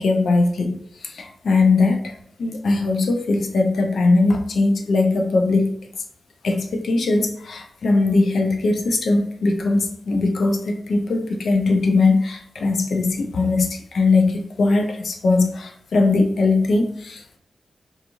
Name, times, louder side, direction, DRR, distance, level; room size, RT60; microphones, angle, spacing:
voice 1, 0.0-2.0 2.4-5.7 6.4-17.4, left 3 dB, 70° left, 2 dB, 0.4 m, -20 dB
3.0 x 2.4 x 2.5 m, 0.66 s
wide cardioid pair, 135°, 0 cm